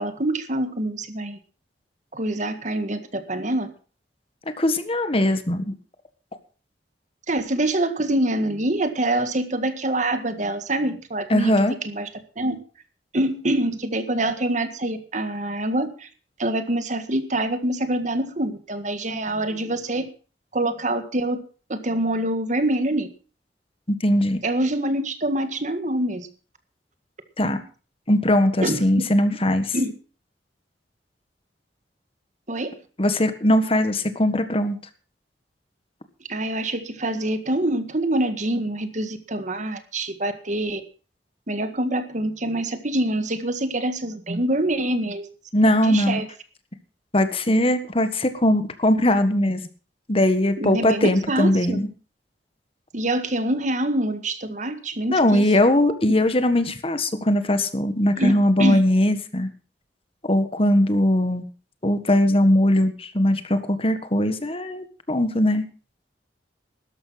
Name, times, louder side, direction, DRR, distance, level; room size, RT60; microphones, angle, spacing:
voice 1, 0.0-1.4 2.1-3.7 7.3-11.5 11.9-12.1 12.4-12.6 13.1-16.1 16.4-20.1 20.5-21.4 21.7-23.1 24.4-26.3 28.6-28.8 29.7-29.9 32.5-32.7 36.3-40.8 41.5-45.3 45.8-46.3 50.6-51.8 52.9-55.5 58.2-58.8, right 1 dB, 45° right, 9 dB, 1.8 m, -25 dB
voice 2, 4.6-5.7 11.3-11.7 24.0-24.4 27.4-27.6 28.1-29.8 33.0-34.8 45.5-46.2 47.1-49.7 50.1-51.9 55.1-59.5 60.2-61.4 61.8-65.6, left 1 dB, 35° left, 10 dB, 1.6 m, -20 dB
13.0 x 11.0 x 5.8 m, 0.38 s
head